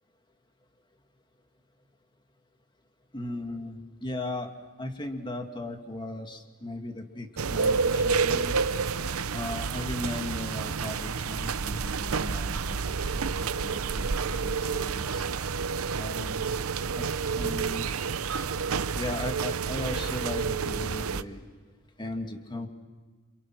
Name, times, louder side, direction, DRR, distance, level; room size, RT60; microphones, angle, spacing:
voice 1, 3.1-4.5 4.8-8.6 9.3-15.3 16.0-16.4 16.9-17.1 17.3-17.9 18.9-21.5 22.0-22.7, left 1 dB, 20° left, 5 dB, 2.3 m, -37 dB
sound 1, 7.4-21.2, right 5 dB, 90° right, 0.7 m, -29 dB
28.5 x 28.5 x 6.3 m, 1.4 s
head